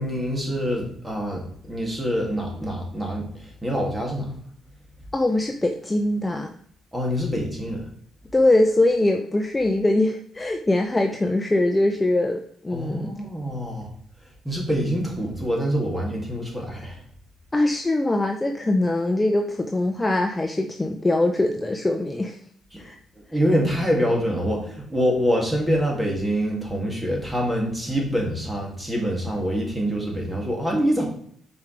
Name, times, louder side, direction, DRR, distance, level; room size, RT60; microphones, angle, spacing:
voice 1, 0.0-4.3 6.9-7.9 12.7-13.9 14.4-17.0 22.7-22.8 23.3-31.0, equal, 10° right, -1 dB, 2.4 m, -25 dB
voice 2, 5.1-6.5 8.3-13.1 17.5-22.4 22.8-23.0, left 2 dB, 15° left, 4 dB, 0.6 m, -22 dB
7.0 x 5.0 x 3.3 m, 0.62 s
cardioid pair, 90°, 0 cm